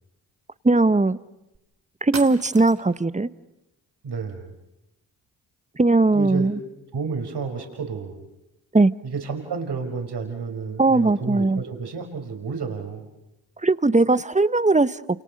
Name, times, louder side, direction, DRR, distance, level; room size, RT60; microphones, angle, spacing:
voice 1, 0.6-1.2 2.0-3.3 5.8-6.6 8.7-8.9 10.8-11.6 13.6-15.0, right 3 dB, 15° right, 16 dB, 1.0 m, -19 dB
sound 1, 1.5-1.6 2.1-3.0, right 4 dB, 35° right, 3.1 m, -37 dB
voice 2, 4.0-4.6 6.1-6.5 6.9-8.2 9.0-13.1, right 5 dB, 60° right, 4 dB, 5.0 m, -31 dB
29.0 x 27.5 x 6.5 m, 0.91 s
supercardioid pair, 45°, 44 cm